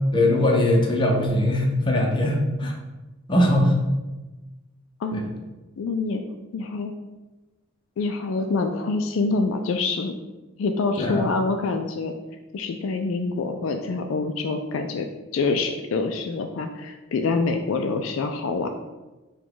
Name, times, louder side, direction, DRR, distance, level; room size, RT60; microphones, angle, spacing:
voice 1, 0.1-2.7 3.3-3.7 5.1-5.2 11.0-11.3, left 1 dB, 25° left, -1 dB, 0.7 m, -21 dB
voice 2, 5.8-6.2 6.5-6.9 8.0-10.1 10.6-12.1 12.5-15.1 15.3-18.7, left 3 dB, 70° left, 5 dB, 0.3 m, -26 dB
4.8 x 2.3 x 3.8 m, 1.1 s
head